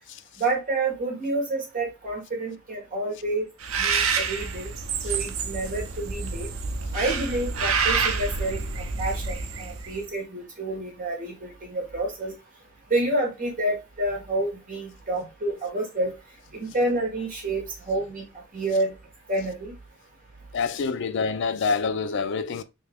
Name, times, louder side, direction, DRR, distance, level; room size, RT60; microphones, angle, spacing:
voice 1, 0.4-3.4 3.8-4.7 5.0-6.5 6.9-8.6 9.0-12.3 12.9-16.1 16.5-18.2 18.5-18.9 19.3-19.7, right 2 dB, 40° right, 1.4 m, -28 dB
Bird, 3.6-10.0, right 5 dB, 70° right, 0.6 m, -28 dB
voice 2, 20.5-22.6, left 5 dB, 60° left, 0.4 m, -26 dB
3.3 x 2.8 x 3.2 m
head